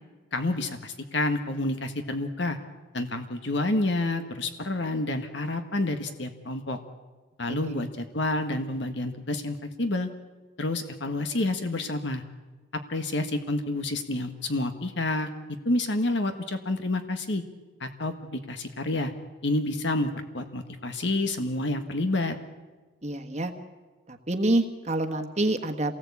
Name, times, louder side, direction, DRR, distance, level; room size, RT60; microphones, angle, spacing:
voice 1, 0.3-2.6 2.9-6.8 7.4-10.1 10.6-12.2 12.9-15.3 15.6-17.4 17.8-19.1 19.4-20.1 20.3-22.4, left 2 dB, 65° left, 7 dB, 1.6 m, -29 dB
voice 2, 7.5-7.8 23.0-23.5 24.1-25.9, right 1 dB, 35° right, 5 dB, 1.4 m, -27 dB
27.5 x 19.0 x 8.5 m, 1.3 s
head